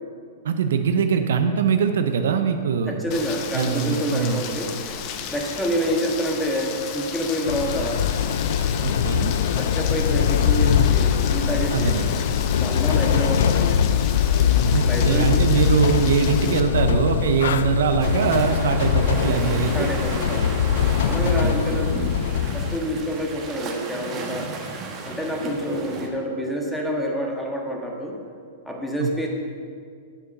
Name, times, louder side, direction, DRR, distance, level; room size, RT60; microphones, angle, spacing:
voice 1, 0.4-3.0 3.5-4.4 8.8-9.3 11.7-12.1 14.7-19.9 21.2-21.5 29.0-29.3, right 6 dB, 75° right, 7 dB, 0.7 m, -22 dB
voice 2, 2.9-4.7 5.3-8.0 9.6-12.0 12.6-13.8 14.8-15.6 19.4-20.6 21.0-22.1 22.5-24.5 25.0-28.2 28.6-29.3, equal, 5° left, -1 dB, 1.6 m, -27 dB
Rain, 3.1-16.6, left 7 dB, 40° left, 0.9 m, -34 dB
sound 1, 7.5-22.8, left 8 dB, 70° left, 0.4 m, -22 dB
sound 2, 18.0-26.1, right 4 dB, 30° right, 1.4 m, -34 dB
9.7 x 7.1 x 5.4 m, 2.2 s
hypercardioid pair, 130°, 0 cm